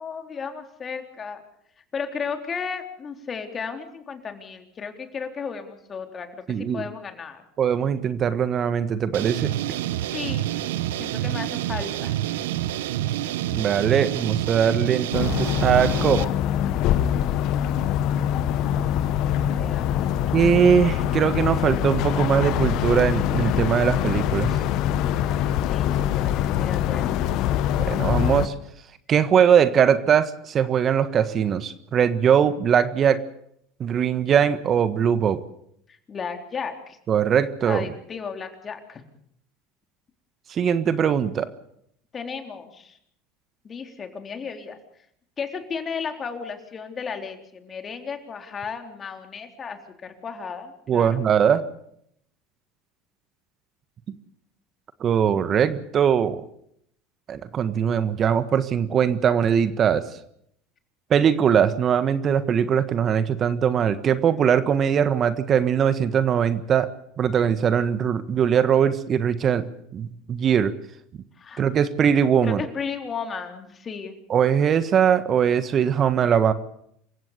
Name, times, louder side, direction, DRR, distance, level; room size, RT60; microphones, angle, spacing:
voice 1, 0.0-1.4 1.9-7.4 10.1-12.2 19.4-20.1 25.2-25.3 25.6-27.3 36.1-37.0 37.6-39.0 42.1-43.0 43.6-44.8 45.4-51.2 71.4-71.6 72.4-74.2, left 6 dB, 30° left, 6 dB, 3.9 m, -34 dB
voice 2, 6.5-6.8 7.6-9.5 13.5-16.2 20.3-24.5 27.9-28.5 29.1-33.2 33.8-35.4 37.1-37.8 40.5-41.5 50.9-51.6 55.0-56.4 57.3-60.0 61.1-66.9 67.2-69.7 69.9-70.7 71.6-72.6 74.3-76.5, right 8 dB, 40° right, 13 dB, 1.5 m, -21 dB
sound 1, 9.1-16.2, right 13 dB, 75° right, 1.0 m, -28 dB
sound 2, 15.1-28.5, left 11 dB, 60° left, 1.3 m, -24 dB
27.5 x 16.0 x 6.9 m, 0.70 s
hypercardioid pair, 80°, 0 cm